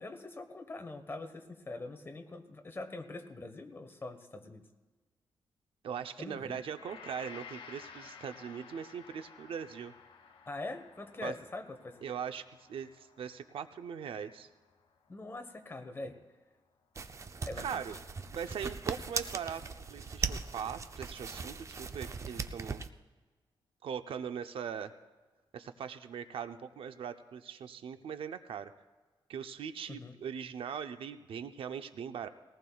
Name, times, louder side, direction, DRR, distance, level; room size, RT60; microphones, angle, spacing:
voice 1, 0.0-4.6 6.2-6.6 10.5-12.0 15.1-16.2 17.5-17.8 29.9-30.1, left 2 dB, 25° left, 7 dB, 1.2 m, -43 dB
voice 2, 5.8-9.9 11.2-11.3 12.0-14.5 17.6-18.0 18.3-19.6 19.9-22.8 23.8-24.9 25.5-28.7 29.3-32.3, right 7 dB, 75° right, 9 dB, 0.6 m, -40 dB
Gong, 6.8-15.2 15.5-15.7, left 6 dB, 75° left, 1.2 m, -54 dB
sound 1, 16.9-22.9, right 4 dB, 35° right, 0.5 m, -39 dB
20.5 x 18.5 x 2.3 m, 1.3 s
wide cardioid pair, 125°, 9 cm